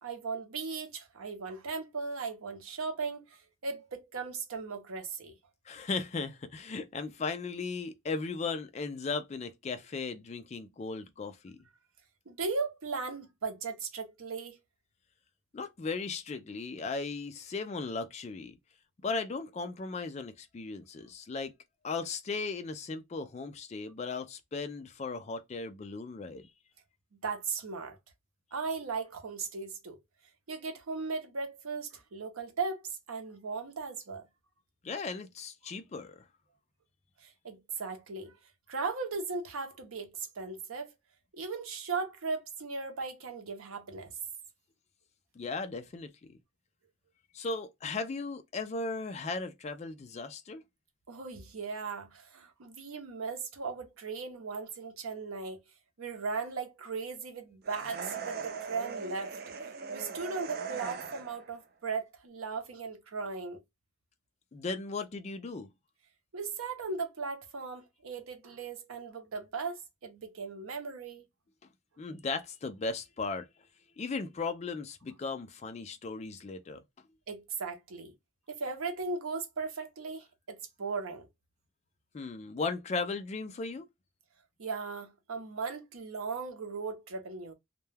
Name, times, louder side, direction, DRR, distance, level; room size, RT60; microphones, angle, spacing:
voice 1, 0.0-5.3 12.3-14.6 27.2-28.0 28.5-30.0 30.5-34.2 37.2-38.4 38.7-40.9 41.3-44.2 51.1-55.6 56.0-59.3 59.9-63.6 66.3-71.2 77.3-78.1 78.5-81.3 84.6-87.5, right 4 dB, 90° right, 0.7 m, -37 dB
voice 2, 5.7-11.6 15.5-18.6 19.0-21.5 21.8-26.5 34.8-36.3 45.4-46.4 47.3-50.6 64.5-65.7 72.0-73.5 74.0-76.8 82.1-83.9, left 4 dB, 30° left, 0.3 m, -37 dB
sound 1, 57.6-61.5, right 5 dB, 45° right, 0.3 m, -39 dB
2.2 x 2.2 x 3.1 m
head